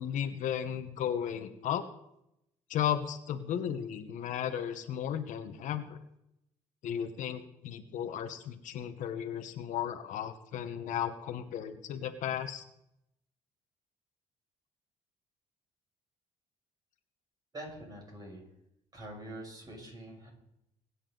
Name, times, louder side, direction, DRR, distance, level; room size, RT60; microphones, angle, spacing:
voice 1, 0.0-1.9 2.7-6.0 6.8-12.6, left 9 dB, 70° left, 8 dB, 1.2 m, -35 dB
voice 2, 17.5-18.4 18.9-20.3, right 1 dB, 30° right, 0 dB, 6.9 m, -45 dB
21.5 x 9.9 x 4.0 m, 0.80 s
cardioid pair, 105°, 13 cm